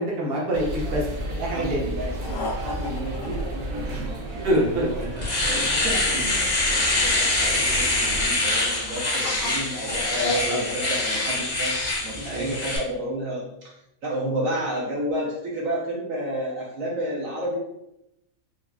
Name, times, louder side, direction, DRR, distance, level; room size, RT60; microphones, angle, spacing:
voice 1, 0.0-1.9 4.4-4.9 5.1-5.2 10.2-10.6 12.2-12.5, right 1 dB, 45° right, -4 dB, 0.9 m, -26 dB
sound 1, 0.5-8.3, right 1 dB, 90° right, 1.1 m, -33 dB
voice 2, 1.4-5.0 5.4-11.8 12.0-13.8 14.0-17.6, right 1 dB, 70° right, -4 dB, 1.1 m, -31 dB
sound 2, 2.2-4.4 8.5-11.1, left 2 dB, 80° left, 1.0 m, -32 dB
Domestic sounds home sounds, 4.5-4.6 5.0-12.8, left 2 dB, 40° left, 0.7 m, -24 dB
3.9 x 2.1 x 2.3 m, 0.82 s
omnidirectional pair, 1.5 m